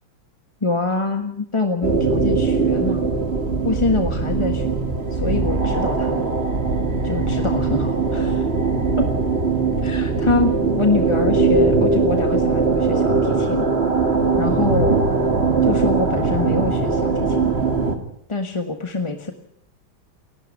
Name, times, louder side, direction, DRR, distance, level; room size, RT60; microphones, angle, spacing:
voice 1, 0.6-3.1 3.6-4.7 5.1-6.3 7.0-8.5 9.0-9.1 9.8-13.7 14.4-15.0 15.6-17.5 18.3-19.3, left 3 dB, 15° left, 6 dB, 1.3 m, -25 dB
sound 1, 1.8-18.0, right 4 dB, 30° right, 2.2 m, -20 dB
29.0 x 12.0 x 8.5 m, 0.70 s
omnidirectional pair, 2.2 m